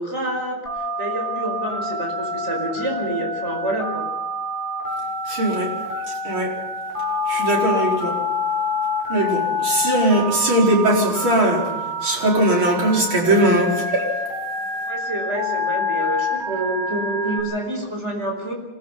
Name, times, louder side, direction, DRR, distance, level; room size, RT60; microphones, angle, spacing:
voice 1, 0.0-4.0 14.8-18.5, right 1 dB, 35° right, 1 dB, 5.3 m, -28 dB
Telephone, 0.7-17.4, left 2 dB, 10° left, 8.0 m, -27 dB
voice 2, 5.2-5.7 6.1-6.5 7.3-8.2 9.1-11.6 12.0-14.1, right 1 dB, 85° right, -2 dB, 5.7 m, -20 dB
26.5 x 18.5 x 5.7 m, 1.2 s
omnidirectional pair, 2.2 m